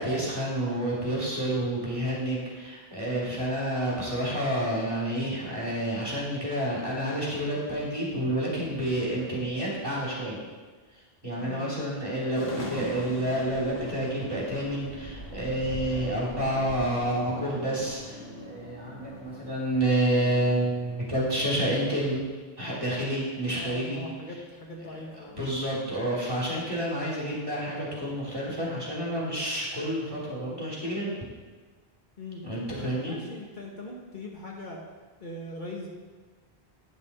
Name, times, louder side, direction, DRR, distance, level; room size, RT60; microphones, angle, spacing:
voice 1, 0.0-10.4 10.9-22.2 22.6-24.1 25.3-31.1 32.4-33.2, right 1 dB, 25° right, -6 dB, 2.4 m, -29 dB
sound 1, 12.3-20.0, left 1 dB, 85° left, 1.4 m, -41 dB
voice 2, 23.5-25.4 26.5-26.9 32.2-32.4 32.8-34.8 35.2-35.9, left 2 dB, 55° left, -2 dB, 1.0 m, -41 dB
9.6 x 5.5 x 4.0 m, 1.4 s
omnidirectional pair, 1.0 m